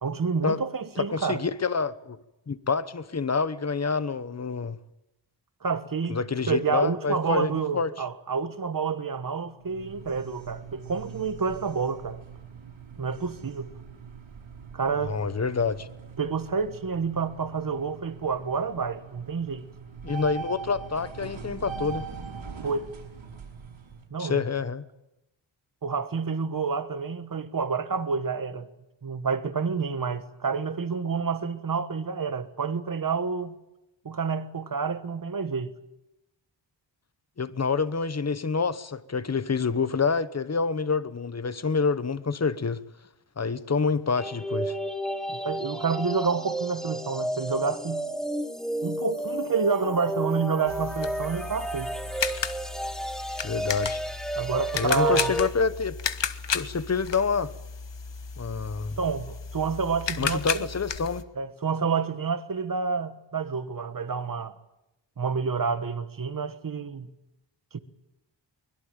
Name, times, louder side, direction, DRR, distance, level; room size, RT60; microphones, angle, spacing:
voice 1, 0.0-1.4 5.6-6.2 6.5-12.2 13.0-13.7 14.7-15.2 16.2-19.6 22.6-22.9 24.1-24.4 25.8-28.7 29.0-33.5 34.0-35.7 45.3-48.1 48.8-51.9 54.4-55.3 59.0-60.4 61.3-64.5 65.2-67.1 67.7-67.8, right 5 dB, 45° right, 1.4 m, -29 dB
voice 2, 1.0-2.2 2.5-4.8 6.1-7.9 15.0-15.9 20.0-22.0 24.2-24.8 37.4-42.8 43.4-44.7 53.4-54.0 54.8-56.0 56.5-57.5 58.4-59.0 60.2-61.2, left 5 dB, 35° left, 1.0 m, -27 dB
sound 1, 9.6-24.0, right 6 dB, 85° right, 5.9 m, -42 dB
sound 2, 44.2-55.5, right 1 dB, ahead, 1.0 m, -32 dB
sound 3, 50.7-61.2, left 6 dB, 65° left, 1.3 m, -34 dB
23.5 x 21.5 x 9.0 m
wide cardioid pair, 165°, 47 cm